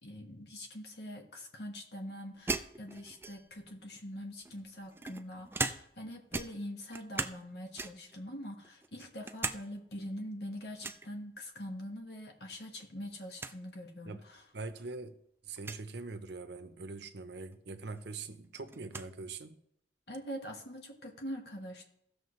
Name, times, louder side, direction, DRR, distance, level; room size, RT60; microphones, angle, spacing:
voice 1, 0.0-14.4 20.1-21.9, equal, 60° left, 3 dB, 1.5 m, -44 dB
sound 1, 2.5-3.6 4.5-6.1 6.3-7.5 7.8-8.2 8.6-9.6 9.9-10.0 10.8-11.1 12.5-12.9 13.1-13.2 13.4-13.6 14.4-14.5 15.6-15.8 17.5-17.6 18.0-19.1, right 3 dB, 10° right, 0.3 m, -38 dB
voice 2, 14.5-15.2 15.4-19.6, right 3 dB, 65° right, 9 dB, 0.7 m, -43 dB
16.5 x 6.6 x 3.2 m, 0.74 s
head